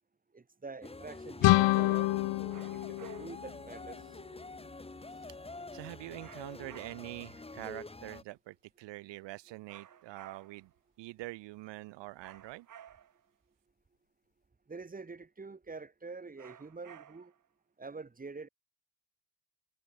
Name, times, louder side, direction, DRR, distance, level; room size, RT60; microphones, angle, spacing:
voice 1, 0.3-2.1 2.7-4.0 14.7-17.3 17.8-18.5, right 4 dB, 20° right, 2.4 m, -46 dB
sound 1, 0.8-8.2, left 2 dB, 15° left, 2.4 m, -47 dB
sound 2, 1.4-4.2, left 19 dB, 75° left, 0.6 m, -28 dB
sound 3, 2.5-3.5 6.2-7.3 9.7-10.7 12.2-13.3 16.4-17.5, right 9 dB, 45° right, 1.4 m, -54 dB
voice 2, 5.7-10.7 11.0-12.7, right 19 dB, 75° right, 0.6 m, -45 dB
cardioid pair, 120°, 43 cm